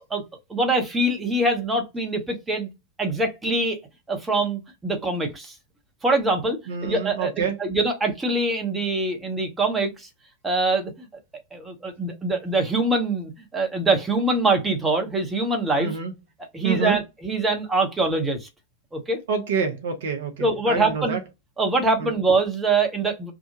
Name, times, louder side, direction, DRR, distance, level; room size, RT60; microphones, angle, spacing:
voice 1, 0.5-2.7 3.0-3.8 4.1-5.5 6.0-10.1 10.4-11.1 11.5-15.9 16.5-18.5 18.9-19.2 20.4-21.2 21.6-23.3, right 2 dB, 10° right, 0.9 m, -24 dB
voice 2, 6.7-7.6 15.8-16.1 16.6-17.0 19.3-21.2 22.0-22.2, right 5 dB, 60° right, 0.6 m, -27 dB
2.8 x 2.2 x 2.7 m
figure-of-eight pair, 90°, 0 cm